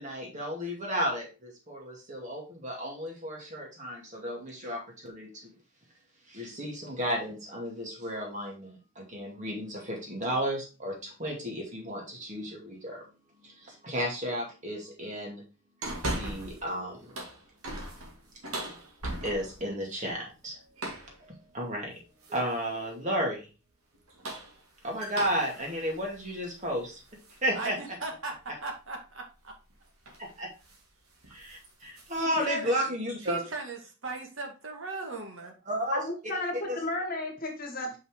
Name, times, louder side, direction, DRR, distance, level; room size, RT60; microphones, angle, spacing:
voice 1, 0.0-5.5 6.3-13.0 13.4-15.4 16.1-17.2 19.2-20.6 21.0-22.0 22.3-23.5 24.8-27.0 27.4-27.8 30.2-30.5 31.3-33.4 35.7-36.0 36.7-36.8, equal, 35° right, 0 dB, 2.1 m, -33 dB
sound 1, 15.8-16.7 17.0-19.7 20.8-21.2 22.2-22.7 23.9-27.4 27.9-28.0 29.5-29.7 30.0-30.3 30.6-30.9 31.2-32.2, right 1 dB, 85° right, 2.1 m, -39 dB
voice 2, 27.5-29.6 32.2-32.8 33.2-35.6, right 3 dB, 65° right, 2 dB, 1.7 m, -38 dB
voice 3, 35.9-38.0, left 2 dB, 40° left, 3 dB, 1.6 m, -33 dB
5.6 x 5.5 x 3.6 m, 0.32 s
head